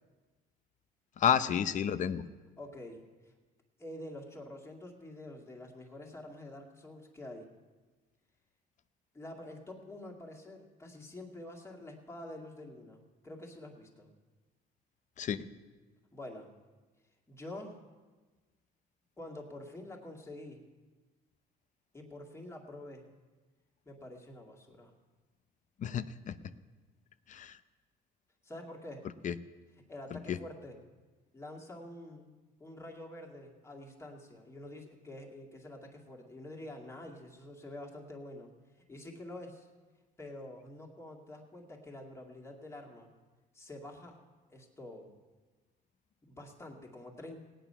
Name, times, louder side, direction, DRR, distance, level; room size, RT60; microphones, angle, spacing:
voice 1, 1.2-2.2 15.2-15.5 25.8-26.4 27.3-27.6 29.2-29.4 30.1-30.4, left 8 dB, 45° left, 14 dB, 0.6 m, -31 dB
voice 2, 2.6-3.3 3.8-7.5 9.1-14.1 16.1-16.5 17.3-17.8 19.2-20.6 21.9-23.0 23.9-24.9 28.4-29.1 29.9-30.8 31.3-32.3 32.6-38.5 38.9-39.7 40.2-43.1 43.5-44.2 44.5-45.1 46.2-47.4, left 1 dB, 15° left, 0 dB, 2.1 m, -47 dB
18.0 x 9.2 x 5.6 m, 1.3 s
cardioid pair, 110°, 17 cm